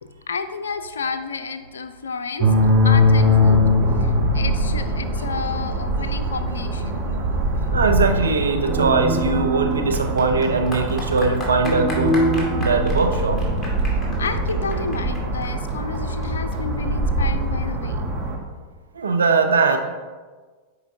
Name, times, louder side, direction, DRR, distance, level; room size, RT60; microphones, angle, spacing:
voice 1, 0.0-2.6 2.8-3.6 4.0-7.1 13.9-18.1, left 5 dB, 80° left, 10 dB, 0.4 m, -31 dB
sound 1, 2.4-18.4, equal, 35° right, 1.2 m, -21 dB
voice 2, 7.7-12.2 12.6-13.5 18.9-19.8, right 4 dB, 80° right, 5 dB, 0.6 m, -20 dB
Clapping / Applause, 8.8-17.8, left 2 dB, 15° left, 1.9 m, -37 dB
7.8 x 5.1 x 2.7 m, 1.4 s
hypercardioid pair, 95°, 0 cm